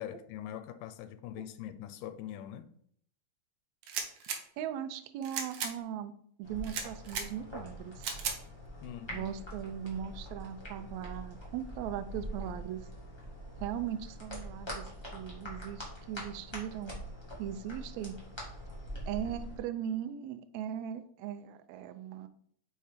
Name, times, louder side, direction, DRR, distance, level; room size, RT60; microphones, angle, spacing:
voice 1, 0.0-2.7 8.8-9.3, left 11 dB, 80° left, 2.2 m, -43 dB
sound 1, 3.8-4.4 5.2-5.7 6.6-7.3 8.0-8.4, right 6 dB, 70° right, 1.9 m, -36 dB
voice 2, 4.6-6.1 6.4-8.1 9.1-12.8 13.6-16.9 17.4-18.1 19.1-22.3, right 9 dB, 90° right, 1.6 m, -39 dB
sound 2, 6.4-19.6, equal, 10° left, 1.4 m, -44 dB
5.5 x 4.5 x 5.0 m
omnidirectional pair, 3.9 m